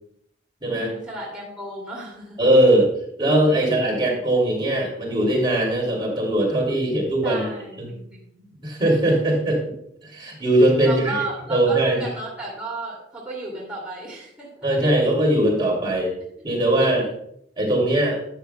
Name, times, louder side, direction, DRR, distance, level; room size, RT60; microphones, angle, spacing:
voice 1, 0.7-2.4 7.2-8.5 10.8-14.8 16.4-16.5 16.8-17.1, right 2 dB, 5° right, -6 dB, 2.4 m, -33 dB
voice 2, 2.4-2.9 3.2-7.5 7.8-7.9 8.6-9.6 10.1-11.2 11.5-12.0 14.6-16.1 16.4-17.0 17.6-18.2, right 1 dB, 25° right, -3 dB, 2.8 m, -20 dB
12.5 x 8.9 x 2.2 m, 0.71 s
head